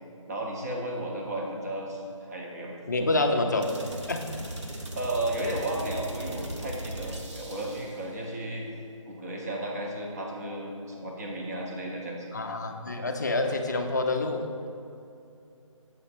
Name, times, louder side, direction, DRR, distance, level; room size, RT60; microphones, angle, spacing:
voice 1, 0.3-3.4 4.9-8.7 9.1-12.3, right 1 dB, 30° right, -1 dB, 0.8 m, -34 dB
voice 2, 2.9-3.7 4.1-4.3 12.3-14.7, left 2 dB, 35° left, 5 dB, 0.4 m, -27 dB
sound 1, 3.6-8.1, right 1 dB, 60° right, 1.0 m, -38 dB
7.7 x 3.1 x 5.8 m, 2.7 s
figure-of-eight pair, 160°, 17 cm